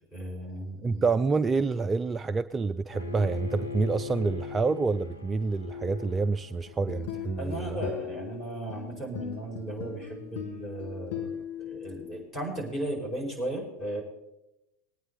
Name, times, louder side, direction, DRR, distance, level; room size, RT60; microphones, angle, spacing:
voice 1, 0.1-1.1 7.4-14.0, right 1 dB, 20° left, -1 dB, 5.1 m, -36 dB
voice 2, 0.8-7.8, right 4 dB, 20° right, 11 dB, 0.3 m, -28 dB
Bowed string instrument, 2.9-8.0, left 5 dB, 75° left, 1.1 m, -41 dB
sound 1, 6.7-12.2, left 9 dB, 55° left, 1.5 m, -39 dB
19.5 x 9.3 x 4.0 m, 0.89 s
figure-of-eight pair, 85°, 0 cm